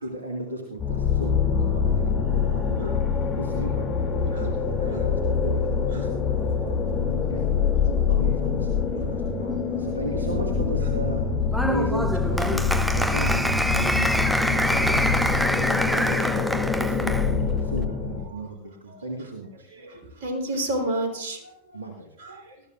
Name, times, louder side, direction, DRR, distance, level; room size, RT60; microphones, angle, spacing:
voice 1, 0.0-3.0 3.4-6.1 6.6-7.4 8.1-11.3 11.6-15.0 15.5-19.7 21.7-22.2, right 1 dB, 75° right, 0 dB, 1.8 m, -35 dB
sound 1, 0.8-18.2, left 5 dB, 15° left, 2.7 m, -25 dB
Applause, 11.5-17.3, equal, ahead, 0.7 m, -26 dB
voice 2, 18.9-19.3 19.7-21.8 22.2-22.6, right 1 dB, 50° right, 2 dB, 3.7 m, -32 dB
19.5 x 13.5 x 2.5 m, 0.80 s
figure-of-eight pair, 90°, 0 cm